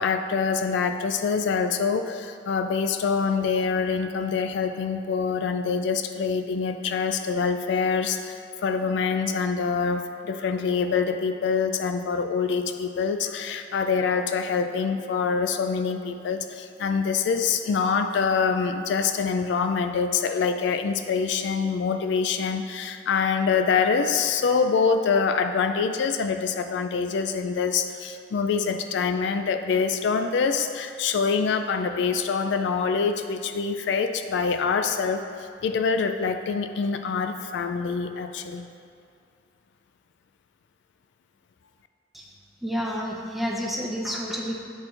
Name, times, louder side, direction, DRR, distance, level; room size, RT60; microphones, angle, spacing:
voice 1, 0.0-38.7, left 5 dB, 65° left, 7 dB, 0.3 m, -25 dB
voice 2, 42.6-44.6, equal, ahead, -2 dB, 0.7 m, -29 dB
8.8 x 4.4 x 3.8 m, 2.3 s
head